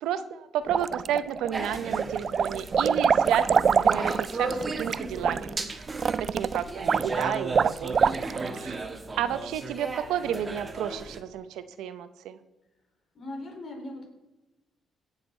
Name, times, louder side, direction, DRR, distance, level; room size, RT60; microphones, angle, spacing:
voice 1, 0.0-5.8 6.3-8.2 8.6-8.7 9.2-12.4, right 9 dB, 85° right, 11 dB, 0.8 m, -31 dB
sound 1, 0.7-1.5 1.9-8.6, right 6 dB, 45° right, 0.3 m, -25 dB
sound 2, 1.5-11.2, right 3 dB, 25° right, 1.6 m, -35 dB
voice 2, 8.2-8.9 13.1-14.1, left 1 dB, 50° left, 3 dB, 3.7 m, -41 dB
18.0 x 7.4 x 4.4 m, 1.0 s
cardioid pair, 90°, 0 cm